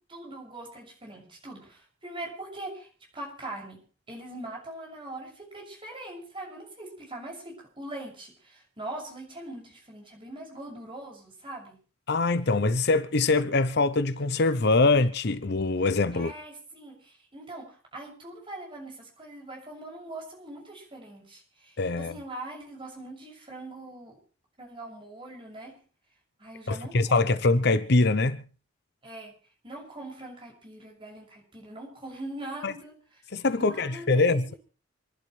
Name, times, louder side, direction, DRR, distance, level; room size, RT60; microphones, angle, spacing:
voice 1, 0.1-2.9 3.1-11.8 16.1-24.2 24.6-25.7 26.4-27.4 29.0-29.3 29.6-32.9 33.5-34.4, right 1 dB, 25° right, 6.8 m, -42 dB
voice 2, 12.1-16.3 21.8-22.1 26.7-28.4 32.6-32.7 33.3-34.5, left 3 dB, 55° left, 0.8 m, -23 dB
28.0 x 11.5 x 3.3 m
head